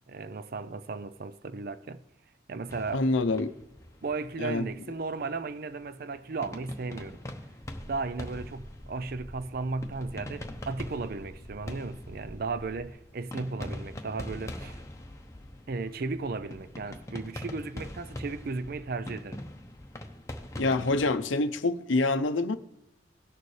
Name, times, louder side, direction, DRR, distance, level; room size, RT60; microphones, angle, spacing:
voice 1, 0.1-2.0 2.5-3.1 4.0-7.2 7.8-14.8 15.7-19.4, right 3 dB, 50° right, 0.5 m, -35 dB
sound 1, 2.7-21.1, left 1 dB, 15° left, 0.8 m, -43 dB
voice 2, 2.9-3.5 4.4-4.7 20.6-22.6, left 2 dB, 90° left, 0.6 m, -26 dB
sound 2, 7.6-12.9, equal, 5° right, 1.9 m, -47 dB
18.0 x 6.8 x 3.2 m
head